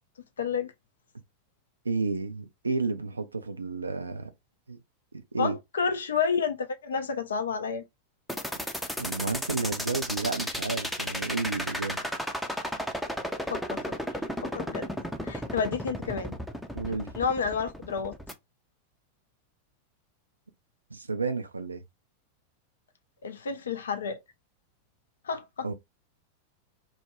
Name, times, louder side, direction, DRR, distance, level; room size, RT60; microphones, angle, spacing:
voice 1, 0.4-0.7 5.4-7.8 13.5-14.0 14.4-14.9 15.2-16.4 17.2-18.2 23.2-24.2 25.2-25.7, left 6 dB, 65° left, 0.4 m, -30 dB
voice 2, 1.8-4.3 4.7-4.8 5.1-5.6 9.0-12.0 16.7-17.1 20.9-21.8 25.6-25.7, right 3 dB, 80° right, 0.4 m, -31 dB
sound 1, 8.3-18.3, equal, ahead, 0.5 m, -33 dB
2.3 x 2.1 x 3.0 m
figure-of-eight pair, 90°, 0 cm